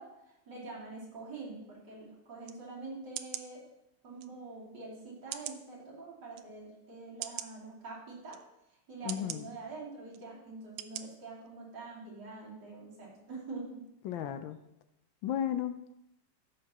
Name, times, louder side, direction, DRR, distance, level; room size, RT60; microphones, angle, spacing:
voice 1, 0.0-3.7 4.0-8.4 8.9-13.9, right 3 dB, 55° right, -7 dB, 3.6 m, -45 dB
sound 1, 2.4-2.6 3.2-3.5 4.2-4.3 5.3-5.6 6.3-6.4 7.2-7.5 8.3-8.4 9.1-9.4 10.1-10.2 10.8-11.0 11.5-11.6, right 12 dB, 90° right, 1.4 m, -40 dB
voice 2, 9.0-9.4 14.0-14.6 15.2-15.8, left 10 dB, 75° left, 10 dB, 1.3 m, -34 dB
15.0 x 6.9 x 2.9 m, 0.83 s
omnidirectional pair, 2.2 m